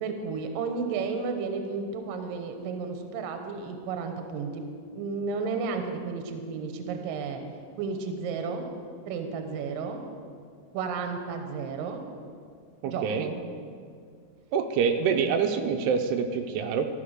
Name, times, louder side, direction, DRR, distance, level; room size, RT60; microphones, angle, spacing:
voice 1, 0.0-4.6 4.9-7.4 7.8-8.6 9.1-10.0 10.7-12.0 12.8-13.4, right 5 dB, 70° right, 5 dB, 2.4 m, -32 dB
voice 2, 12.8-13.3 14.5-16.9, right 6 dB, 85° right, 5 dB, 2.7 m, -26 dB
13.0 x 6.5 x 6.4 m, 2.1 s
omnidirectional pair, 4.7 m